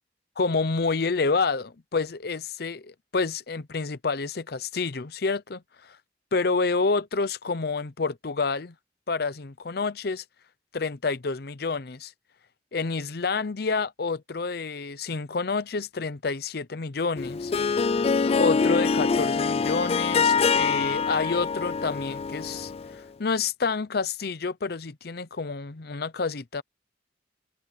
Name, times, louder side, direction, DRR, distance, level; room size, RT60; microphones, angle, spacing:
voice 1, 0.4-6.0 6.3-8.7 9.1-10.2 10.7-12.1 12.7-17.5 18.3-26.6, left 4 dB, 60° left, 0.7 m, -28 dB
Harp, 17.2-22.9, left 5 dB, 35° left, 0.3 m, -24 dB
head